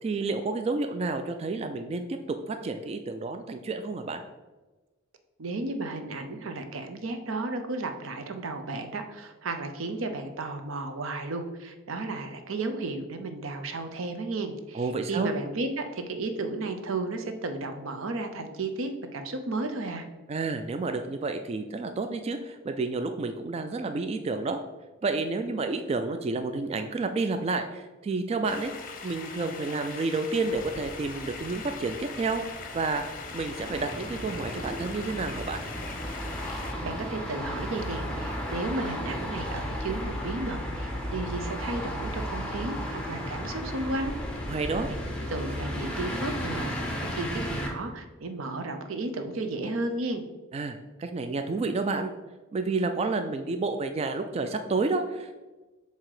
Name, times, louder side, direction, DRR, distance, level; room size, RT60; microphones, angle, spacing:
voice 1, 0.0-4.2 14.7-15.3 20.3-24.6 25.0-28.7 29.0-32.4 32.7-33.1 33.3-35.6 44.5-44.9 50.5-52.1 52.5-55.4, right 3 dB, 30° right, 7 dB, 0.3 m, -30 dB
voice 2, 5.4-20.0 36.8-44.1 45.3-50.2, right 2 dB, 80° right, 7 dB, 0.7 m, -33 dB
sound 1, 28.4-36.7, left 4 dB, 45° left, 0.7 m, -41 dB
sound 2, 30.5-47.7, equal, 5° left, 0.9 m, -35 dB
7.3 x 2.8 x 4.8 m, 1.2 s
head